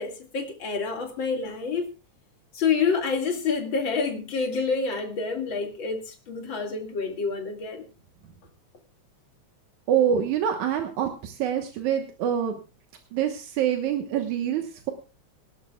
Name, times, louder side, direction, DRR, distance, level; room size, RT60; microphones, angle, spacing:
voice 1, 0.0-1.9 2.5-7.8, left 5 dB, 45° left, 3 dB, 2.6 m, -28 dB
voice 2, 9.9-12.5 13.1-14.9, right 9 dB, 85° right, 4 dB, 2.7 m, -25 dB
25.5 x 11.5 x 2.3 m, 0.32 s
omnidirectional pair, 3.3 m